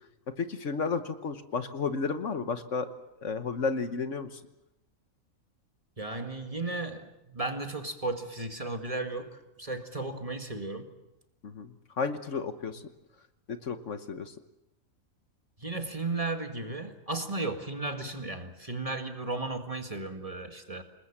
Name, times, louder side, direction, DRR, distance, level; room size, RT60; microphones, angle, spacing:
voice 1, 0.4-2.9 3.2-4.3 11.4-12.8 13.5-14.3, left 5 dB, 60° left, 9 dB, 1.4 m, -32 dB
voice 2, 6.0-10.9 15.6-20.8, right 2 dB, 25° right, 5 dB, 2.0 m, -35 dB
27.5 x 20.5 x 7.3 m, 0.90 s
omnidirectional pair, 1.5 m